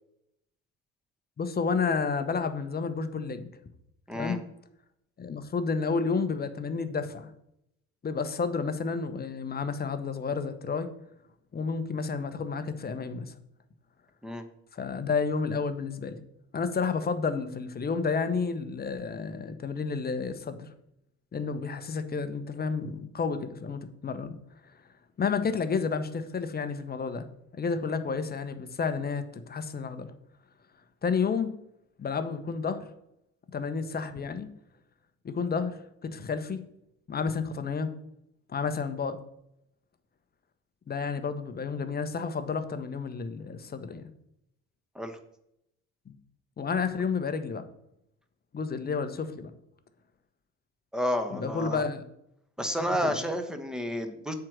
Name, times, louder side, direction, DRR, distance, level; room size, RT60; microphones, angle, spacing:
voice 1, 1.4-3.5 4.1-4.4 5.2-7.3 8.0-10.9 11.5-13.3 14.7-16.2 16.5-20.7 21.3-24.4 25.2-27.3 27.5-30.1 31.0-31.5 32.0-32.8 33.5-34.5 35.2-36.6 37.1-37.9 38.5-39.2 40.9-44.1 46.1-46.2 46.6-47.7 48.5-49.5 51.3-52.0 53.0-53.1, left 5 dB, 25° left, 10 dB, 0.9 m, -31 dB
voice 2, 4.1-4.4 14.2-14.4 44.9-45.2 50.9-51.8 52.6-54.3, equal, ahead, 7 dB, 1.2 m, -30 dB
7.5 x 4.7 x 6.2 m, 0.79 s
figure-of-eight pair, 60°, 40 cm